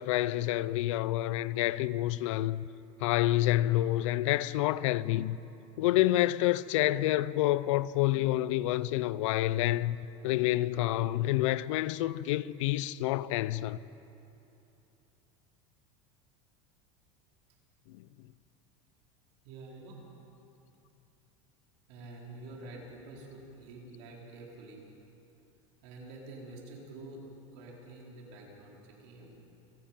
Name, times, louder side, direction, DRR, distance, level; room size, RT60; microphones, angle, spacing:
voice 1, 0.0-2.6 3.0-5.4 5.8-10.0 10.2-13.8, left 15 dB, 80° left, 0.6 m, -28 dB
voice 2, 19.4-20.0 21.9-24.9 25.8-29.3, right 2 dB, 60° right, 4.6 m, -48 dB
29.0 x 10.5 x 9.0 m
supercardioid pair, 175°, 16 cm